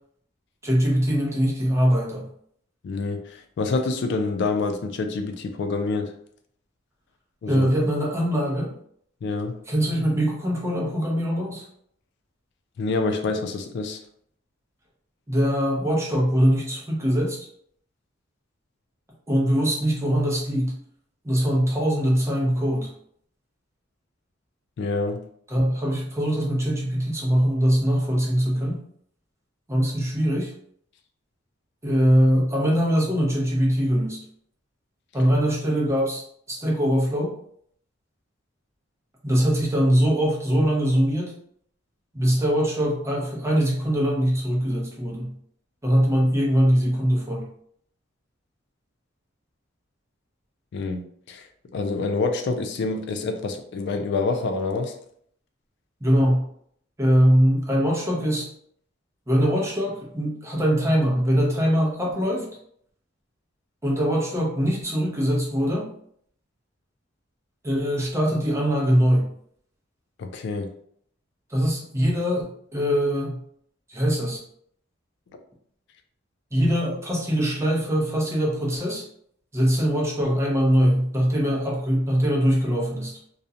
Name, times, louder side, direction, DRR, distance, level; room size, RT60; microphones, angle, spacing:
voice 1, 0.6-2.3 7.5-8.7 9.7-11.7 15.3-17.4 19.3-20.8 21.2-22.9 25.5-28.8 29.7-30.5 31.8-34.2 35.1-36.2 36.5-37.3 39.2-41.3 42.1-45.3 45.8-47.5 56.0-56.5 57.0-58.5 59.3-62.4 63.8-65.9 67.6-69.3 71.5-72.4 72.7-73.4 73.9-74.4 76.5-79.0 79.5-83.1, equal, 15° right, -3 dB, 0.6 m, -22 dB
voice 2, 2.8-6.1 7.4-7.7 9.2-9.5 12.8-14.0 24.8-25.2 50.7-51.4 51.7-54.9 70.2-70.7, left 3 dB, 65° left, 6 dB, 0.3 m, -27 dB
2.4 x 2.1 x 2.7 m, 0.66 s
head